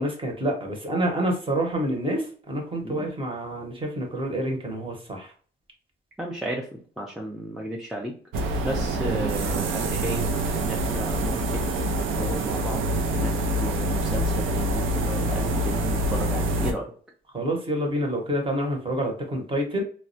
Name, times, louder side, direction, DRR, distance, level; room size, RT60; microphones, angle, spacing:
voice 1, 0.0-5.3 17.3-19.8, right 1 dB, 25° right, 2 dB, 0.8 m, -27 dB
voice 2, 6.2-8.1 8.6-11.7 12.2-16.9, equal, ahead, -1 dB, 0.4 m, -34 dB
sound 1, 8.3-16.7, right 1 dB, 90° right, 0.4 m, -26 dB
2.2 x 2.1 x 2.7 m, 0.43 s
cardioid pair, 90°, 20 cm